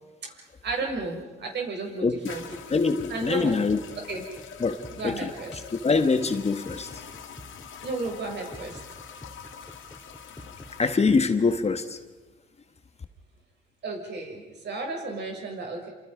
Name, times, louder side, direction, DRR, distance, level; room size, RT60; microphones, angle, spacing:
voice 1, 0.3-2.4 3.1-3.6 4.0-4.2 4.9-5.6 7.8-8.8 13.8-15.9, right 3 dB, 60° right, 1 dB, 7.1 m, -33 dB
sound 1, 1.4-1.5 2.2-11.0, left 7 dB, 80° left, 2.4 m, -45 dB
sound 2, 2.3-11.6, left 1 dB, 10° left, 3.8 m, -48 dB
voice 2, 2.7-3.8 4.6-4.8 5.0-5.3 5.7-6.9 10.8-12.0, left 4 dB, 30° left, 8 dB, 1.7 m, -24 dB
28.5 x 27.0 x 5.3 m, 1.2 s
cardioid pair, 90°, 20 cm